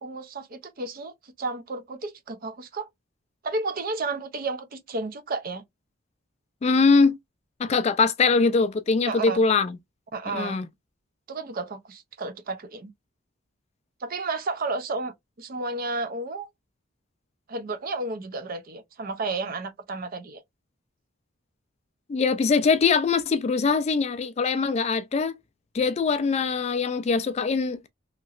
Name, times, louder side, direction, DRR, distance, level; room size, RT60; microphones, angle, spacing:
voice 1, 0.0-2.9 3.4-5.6 9.1-9.4 10.1-10.6 11.3-12.9 14.0-16.5 17.5-20.4, right 3 dB, 45° right, 0.5 m, -32 dB
voice 2, 6.6-7.2 7.6-9.8 10.3-10.7 22.1-25.4 25.7-27.8, left 4 dB, 30° left, 0.3 m, -22 dB
2.9 x 2.8 x 2.4 m
head